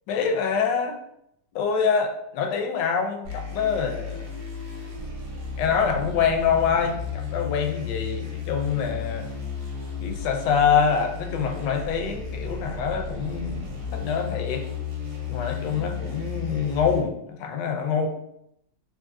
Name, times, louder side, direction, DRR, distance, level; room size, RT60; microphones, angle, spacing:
voice 1, 0.1-1.0 1.5-4.3 5.6-9.3 10.0-13.6 13.9-14.6 15.3-18.1, left 6 dB, 80° left, 4 dB, 1.2 m, -25 dB
sound 1, 3.2-17.0, left 5 dB, 60° right, 1.1 m, -33 dB
3.5 x 2.5 x 2.5 m, 0.76 s
omnidirectional pair, 1.9 m